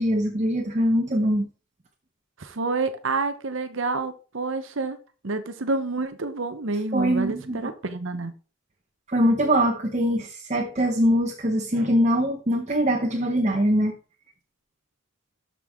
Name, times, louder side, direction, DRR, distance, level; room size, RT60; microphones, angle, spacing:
voice 1, 0.0-1.5 6.9-7.6 9.1-14.0, equal, 30° right, 0.9 m, -22 dB
voice 2, 2.4-5.0 5.2-8.3, right 3 dB, 60° right, 0.8 m, -28 dB
12.5 x 5.4 x 3.6 m
head